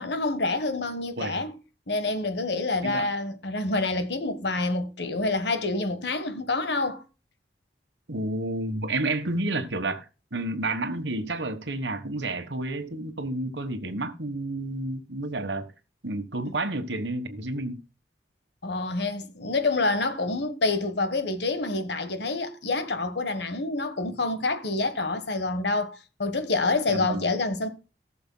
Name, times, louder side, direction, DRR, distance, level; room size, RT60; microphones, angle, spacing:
voice 1, 0.0-1.5 1.9-7.0 16.4-16.5 18.6-27.7, left 3 dB, 70° left, 1.3 m, -27 dB
voice 2, 8.1-10.1 10.3-15.7 16.0-17.8 26.9-27.3, right 2 dB, 80° right, 1.4 m, -30 dB
19.0 x 6.8 x 2.2 m
head